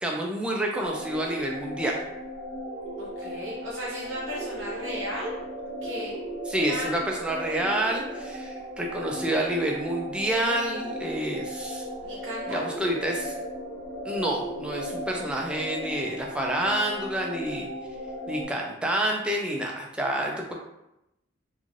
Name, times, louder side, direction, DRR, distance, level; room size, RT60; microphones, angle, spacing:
voice 1, 0.0-2.0 6.5-11.8 12.5-13.3 14.0-17.7 18.3-20.5, right 1 dB, 5° right, -1 dB, 0.4 m, -28 dB
sound 1, 0.8-18.4, equal, 55° right, 1.2 m, -36 dB
voice 2, 3.0-5.3 5.8-6.1 6.7-7.0 12.1-12.6, equal, 80° right, -6 dB, 0.7 m, -35 dB
3.0 x 2.5 x 2.5 m, 0.88 s
head